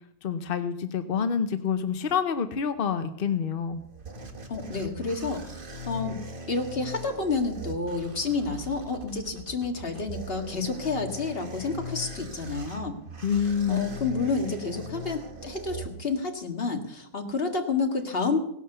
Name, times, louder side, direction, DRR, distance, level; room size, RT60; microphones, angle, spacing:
voice 1, 0.2-3.8 13.2-13.9, left 7 dB, 50° left, 9 dB, 0.6 m, -27 dB
sound 1, 3.4-16.4, equal, 30° right, 1.4 m, -40 dB
voice 2, 4.5-5.4 5.9-6.2 6.5-13.0 13.7-18.4, left 4 dB, 35° left, 4 dB, 2.0 m, -29 dB
17.0 x 11.0 x 6.8 m, 0.73 s
omnidirectional pair, 1.9 m